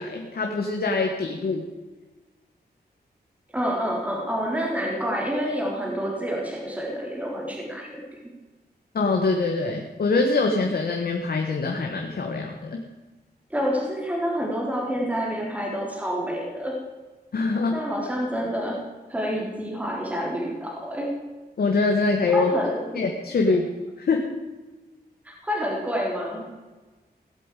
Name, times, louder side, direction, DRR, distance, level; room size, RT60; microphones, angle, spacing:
voice 1, 0.0-1.6 8.9-12.8 17.3-17.8 21.6-22.5 22.9-23.7 24.0-24.3, left 3 dB, 65° left, 2 dB, 1.7 m, -24 dB
voice 2, 3.5-8.0 13.5-16.8 17.7-18.8 19.1-21.2 22.3-23.0 25.2-26.5, equal, 10° right, -2 dB, 3.5 m, -28 dB
17.5 x 8.7 x 9.3 m, 1.2 s
wide cardioid pair, 170°, 17 cm